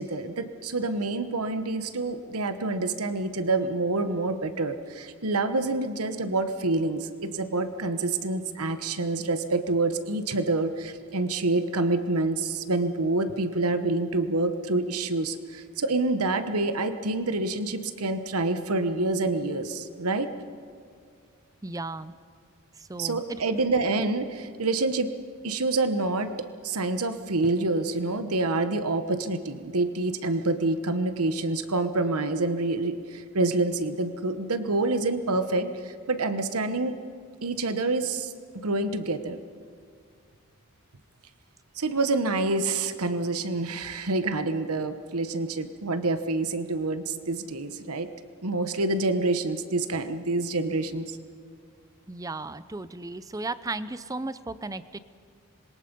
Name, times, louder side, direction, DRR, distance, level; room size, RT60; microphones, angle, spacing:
voice 1, 0.0-20.3 23.0-25.1 25.4-36.9 37.4-39.4 41.8-48.1 48.4-51.2, right 2 dB, 85° right, 10 dB, 1.1 m, -27 dB
voice 2, 21.6-22.1 22.8-23.4 52.1-55.0, right 2 dB, 15° right, 15 dB, 0.5 m, -35 dB
26.0 x 22.5 x 5.4 m, 2.1 s
head